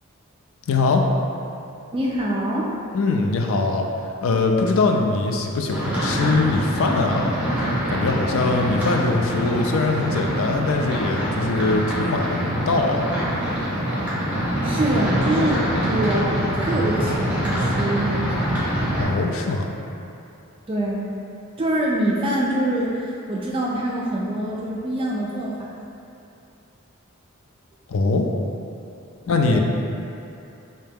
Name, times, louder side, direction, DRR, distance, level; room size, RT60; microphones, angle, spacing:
voice 1, 0.7-1.0 2.9-7.3 7.9-13.0 19.0-19.7 27.9-28.3 29.3-29.6, left 3 dB, 65° left, 2 dB, 0.4 m, -22 dB
voice 2, 1.9-2.7 14.6-18.6 20.7-21.1 21.6-25.7 29.5-29.6, right 1 dB, 25° right, -3 dB, 0.3 m, -25 dB
sound 1, 5.7-19.0, equal, 5° right, 0.8 m, -24 dB
3.2 x 2.8 x 3.4 m, 2.6 s
head